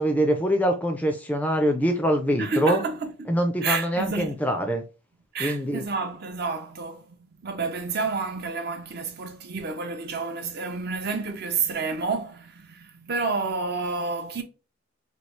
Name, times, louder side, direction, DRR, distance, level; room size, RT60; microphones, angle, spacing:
voice 1, 0.0-2.8 3.3-4.8 5.4-5.8, equal, 10° left, 0.3 m, -24 dB
voice 2, 2.4-3.4 3.6-4.4 5.3-14.4, right 4 dB, 50° right, 0.5 m, -30 dB
3.1 x 2.3 x 3.1 m
head